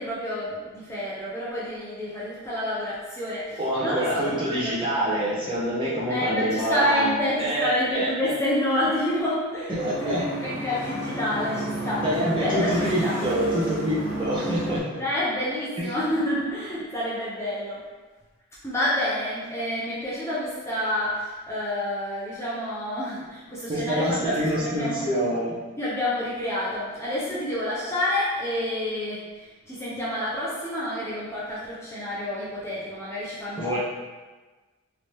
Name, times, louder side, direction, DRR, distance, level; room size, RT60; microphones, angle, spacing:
voice 1, 0.0-4.9 6.1-12.0 12.4-12.8 13.0-13.2 15.0-17.8 18.6-25.0 25.8-33.8, left 1 dB, 10° left, -9 dB, 0.6 m, -28 dB
voice 2, 3.6-8.3 9.8-10.2 12.0-15.0 15.8-15.9 23.7-25.6 33.6-33.8, right 1 dB, 25° right, -7 dB, 0.8 m, -26 dB
sound 1, 9.8-14.8, right 1 dB, 45° right, 1.0 m, -31 dB
3.4 x 2.8 x 3.2 m, 1.3 s
head